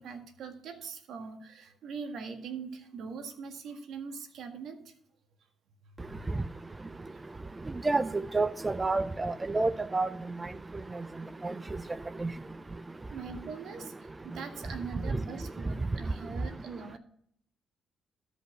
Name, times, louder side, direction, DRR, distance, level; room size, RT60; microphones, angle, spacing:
voice 1, 0.0-4.9 6.1-6.2 7.1-7.2 13.1-13.9 14.2-17.0, right 5 dB, 75° right, 6 dB, 1.7 m, -42 dB
voice 2, 8.3-10.1 11.4-11.5 12.2-12.3, right 3 dB, 20° right, 14 dB, 0.4 m, -28 dB
13.0 x 5.5 x 6.0 m, 0.67 s
cardioid pair, 90°, 0 cm